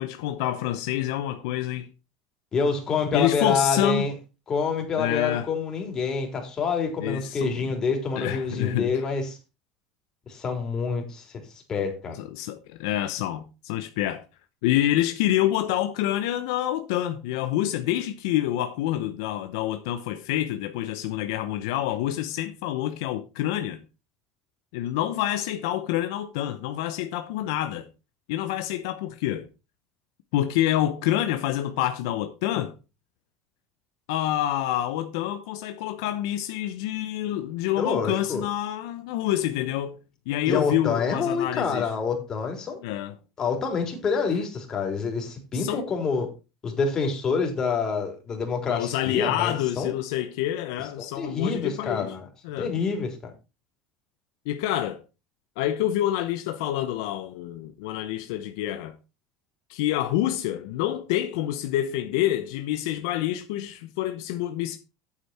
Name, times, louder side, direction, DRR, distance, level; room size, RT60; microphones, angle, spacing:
voice 1, 0.0-1.9 3.1-4.1 5.0-5.5 7.0-7.6 8.2-9.1 12.2-14.2 14.6-23.8 24.7-27.9 28.3-29.5 30.3-32.7 34.1-40.0 40.3-41.9 42.8-43.1 45.5-45.9 48.7-52.1 52.4-52.7 54.5-55.0 55.6-58.9 59.7-64.8, left 13 dB, 75° left, 0.9 m, -27 dB
voice 2, 2.5-4.1 4.5-9.4 10.3-11.3 11.7-12.2 37.8-38.5 40.4-42.8 43.4-46.3 46.6-49.9 51.0-52.3 52.6-53.3, left 5 dB, 30° left, 3.6 m, -27 dB
8.8 x 7.9 x 4.4 m
supercardioid pair, 115°, 2 cm